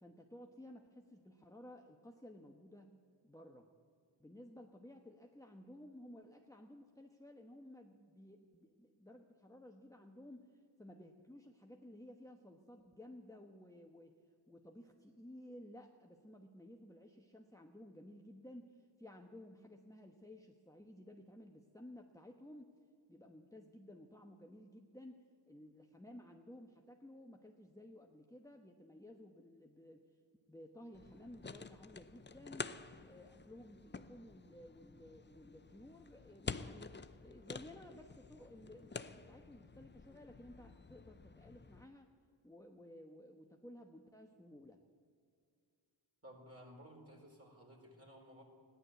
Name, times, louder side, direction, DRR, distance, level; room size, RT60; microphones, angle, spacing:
voice 1, 0.0-2.9 3.2-3.7 4.2-14.1 14.5-22.7 23.1-30.0 30.5-32.7 33.0-37.0 37.2-42.1 42.4-44.8, left 1 dB, 5° left, 2 dB, 1.1 m, -56 dB
sound 1, 30.9-41.8, left 4 dB, 25° left, 0.6 m, -49 dB
voice 2, 46.2-48.4, equal, 30° right, 0 dB, 4.4 m, -56 dB
15.0 x 11.0 x 8.0 m, 2.2 s
cardioid pair, 50°, 47 cm